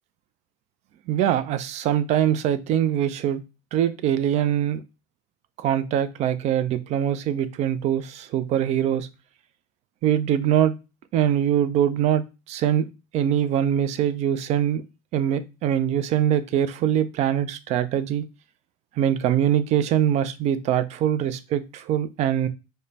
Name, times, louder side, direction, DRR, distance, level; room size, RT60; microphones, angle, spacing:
voice 1, 1.1-3.4 3.7-4.8 5.6-9.1 10.0-10.7 11.1-12.2 12.5-12.9 13.1-14.8 15.1-18.2 19.0-22.5, right 10 dB, 55° right, 13 dB, 0.5 m, -23 dB
4.9 x 2.2 x 2.7 m, 0.28 s
supercardioid pair, 95°, 14 cm